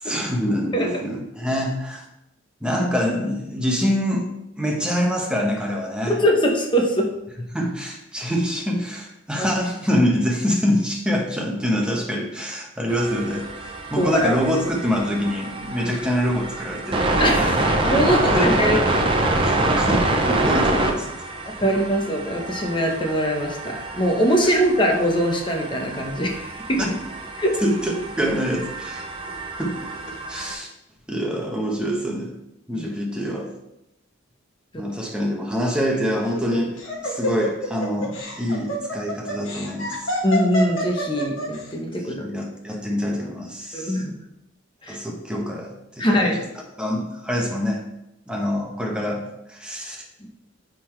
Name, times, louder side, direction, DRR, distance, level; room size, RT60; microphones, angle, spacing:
voice 1, 0.0-2.0 2.6-4.3 4.6-6.2 7.5-17.1 18.0-18.8 19.4-21.3 26.8-26.9 27.6-29.0 29.6-29.9 30.3-30.7 31.1-32.3 32.7-33.5 34.7-40.1 42.0-44.0 44.9-46.3 46.8-47.8 48.3-50.0, equal, 5° right, 0 dB, 1.0 m, -25 dB
voice 2, 6.1-7.1 9.4-9.5 14.0-14.3 15.8-15.9 17.2-18.8 21.6-26.8 27.4-27.5 32.7-32.9 34.7-34.8 40.2-42.3 43.7-44.1 44.8-45.0 46.0-46.4, equal, 25° left, 1 dB, 1.0 m, -22 dB
sound 1, 12.9-30.5, right 2 dB, 25° right, 0.6 m, -26 dB
Laughter, 36.2-41.6, equal, 90° left, 1.6 m, -28 dB
9.2 x 3.8 x 3.2 m, 0.83 s
head